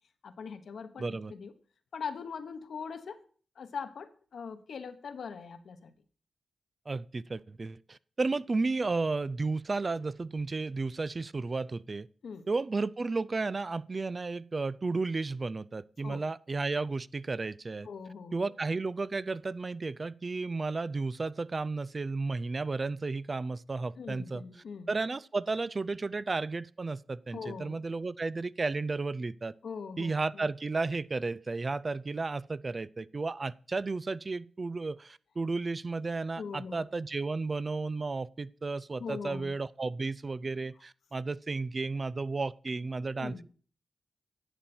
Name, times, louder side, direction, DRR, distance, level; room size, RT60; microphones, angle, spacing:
voice 1, 0.2-1.5 1.9-3.2 3.6-5.9 12.2-12.5 16.0-16.2 17.8-18.5 24.0-24.9 27.3-27.8 29.6-30.5 36.4-36.8 39.0-39.5 43.1-43.4, left 5 dB, 80° left, 1.1 m, -41 dB
voice 2, 1.0-1.3 6.9-12.1 12.5-17.9 18.3-24.4 24.9-29.5 30.0-43.4, right 3 dB, 45° right, 0.4 m, -33 dB
11.0 x 7.6 x 4.4 m
cardioid pair, 50°, 0 cm